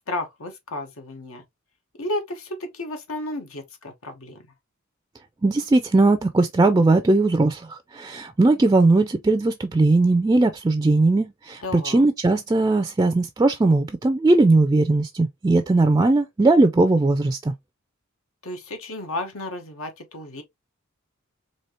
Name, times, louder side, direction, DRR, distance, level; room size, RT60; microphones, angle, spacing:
voice 1, 0.0-1.4 2.0-4.4 11.6-12.1 18.4-20.4, left 2 dB, 85° left, 1.1 m, -32 dB
voice 2, 5.4-17.5, right 2 dB, 20° right, 0.3 m, -19 dB
4.3 x 2.7 x 3.0 m
head